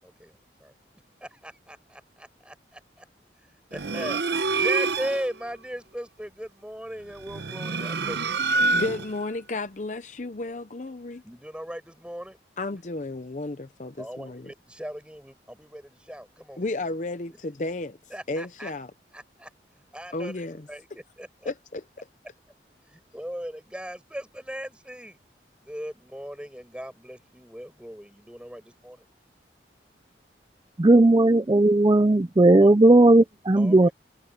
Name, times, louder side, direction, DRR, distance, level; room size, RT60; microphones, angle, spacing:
voice 1, 0.0-0.7 1.2-3.1 3.7-8.5 11.2-12.4 14.0-16.7 17.3-17.4 18.1-18.7 19.1-19.5 19.9-21.5 22.9-25.2 25.6-29.0 32.6-32.7 33.6-33.9, equal, 5° right, 5.6 m, -38 dB
sound 1, 3.7-5.3 7.2-9.2, right 3 dB, 70° right, 0.9 m, -26 dB
voice 2, 8.7-11.2 12.6-14.5 16.6-18.0 18.3-18.9 20.1-20.7 21.5-22.1, left 2 dB, 45° left, 0.7 m, -33 dB
voice 3, 30.8-33.9, right 2 dB, 25° right, 0.5 m, -16 dB
head